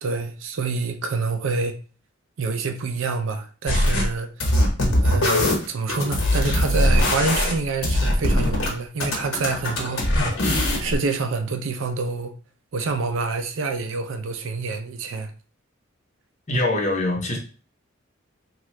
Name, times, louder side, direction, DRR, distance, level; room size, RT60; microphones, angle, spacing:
voice 1, 0.0-1.7 2.4-4.3 5.0-10.3 10.8-12.3 12.7-15.3, right 4 dB, 65° right, 0.4 m, -27 dB
sound 1, 3.7-4.0 4.4-8.7 9.0-10.9, left 1 dB, 85° left, 1.0 m, -21 dB
voice 2, 16.5-17.4, left 1 dB, 35° left, 0.8 m, -23 dB
2.9 x 2.3 x 3.1 m
head